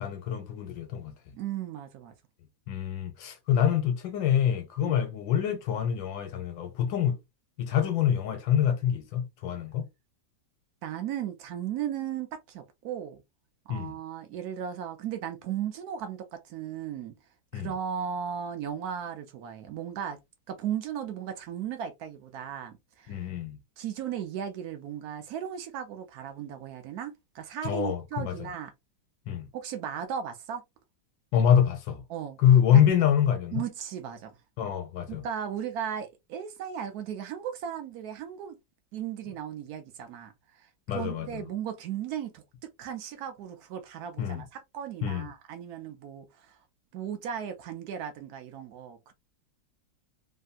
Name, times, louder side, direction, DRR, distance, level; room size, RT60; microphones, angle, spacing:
voice 1, 0.0-1.1 2.7-7.2 7.6-9.9 13.7-13.9 17.5-17.7 23.1-23.6 27.6-28.5 29.3-29.5 31.3-32.0 32.4-33.6 34.6-35.2 40.9-41.4 44.2-44.4 45.0-45.3, left 9 dB, 80° left, 1.3 m, -25 dB
voice 2, 1.3-2.1 4.8-5.0 10.8-13.2 13.7-17.1 17.5-20.2 20.5-23.3 23.8-28.7 29.5-30.6 32.1-32.4 32.7-32.8 33.5-34.4 35.1-38.5 38.9-46.6 46.9-49.1, right 9 dB, 70° right, 0.9 m, -36 dB
3.3 x 2.6 x 2.3 m
omnidirectional pair, 2.1 m